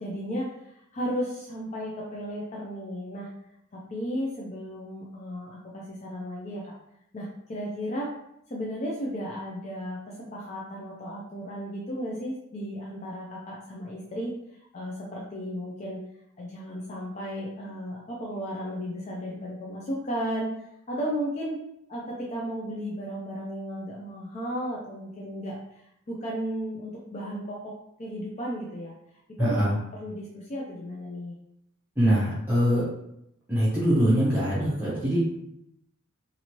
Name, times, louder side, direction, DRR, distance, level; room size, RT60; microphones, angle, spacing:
voice 1, 0.0-3.3 3.7-6.7 7.1-8.1 8.5-14.3 14.7-16.0 16.4-21.6 21.9-27.7 28.0-28.9 29.4-29.6 30.0-31.3, equal, 35° left, -3 dB, 0.4 m, -34 dB
voice 2, 29.4-29.8 32.0-32.9 33.5-35.2, equal, 10° right, -10 dB, 0.6 m, -23 dB
2.9 x 2.5 x 2.9 m, 0.78 s
head